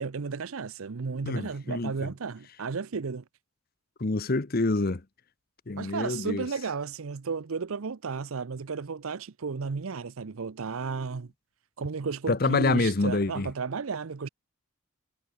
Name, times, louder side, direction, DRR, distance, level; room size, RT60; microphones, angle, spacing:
voice 1, 0.0-3.2 5.8-11.3 11.8-14.3, right 5 dB, 80° right, 0.6 m, -33 dB
voice 2, 1.3-2.1 4.0-5.0 5.7-6.4 12.3-13.5, left 3 dB, 45° left, 0.8 m, -26 dB
head